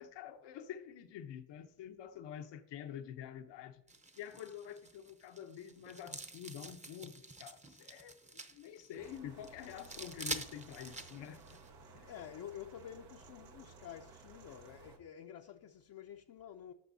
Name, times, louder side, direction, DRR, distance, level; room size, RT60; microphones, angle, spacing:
voice 1, 0.0-3.8 4.1-8.2 8.5-11.6 11.9-12.1, left 9 dB, 85° left, 0.9 m, -47 dB
Fake Termites, 3.9-11.7, right 3 dB, 15° right, 0.8 m, -47 dB
sound 1, 9.0-15.0, right 4 dB, 85° right, 1.6 m, -57 dB
voice 2, 12.0-16.7, left 10 dB, 55° left, 0.6 m, -50 dB
12.5 x 7.1 x 2.7 m
cardioid pair, 90°, 42 cm